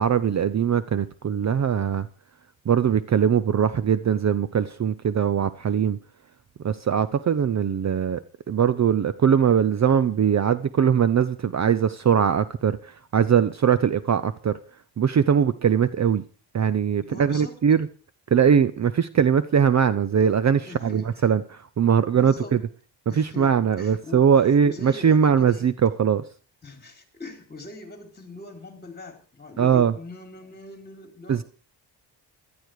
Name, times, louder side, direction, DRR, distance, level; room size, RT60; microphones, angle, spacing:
voice 1, 0.0-2.1 2.7-6.0 6.6-14.6 15.0-16.2 16.5-17.9 18.3-22.6 23.2-26.2 29.6-29.9 31.3-31.4, right 8 dB, 40° right, 0.7 m, -21 dB
voice 2, 17.0-17.5 20.6-21.3 22.1-22.6 23.1-25.7 26.6-31.4, left 3 dB, 20° left, 3.5 m, -41 dB
16.0 x 12.0 x 4.8 m
cardioid pair, 120°, 44 cm